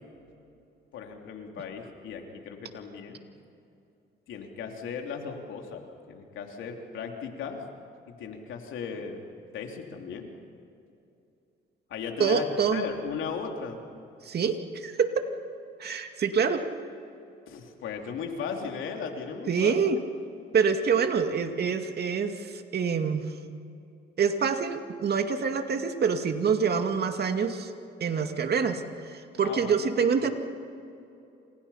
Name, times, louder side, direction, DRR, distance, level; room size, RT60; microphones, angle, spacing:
voice 1, 0.9-3.2 4.3-7.6 8.1-9.2 9.5-10.3 11.9-13.8 17.5-19.8 29.4-29.9, left 6 dB, 80° left, 2 dB, 3.4 m, -37 dB
voice 2, 12.2-12.8 14.2-15.3 15.8-16.6 19.5-20.0 20.5-23.3 24.2-27.7 28.0-30.3, right 6 dB, 55° right, 6 dB, 2.3 m, -26 dB
28.5 x 27.5 x 5.8 m, 2.7 s
cardioid pair, 90°, 20 cm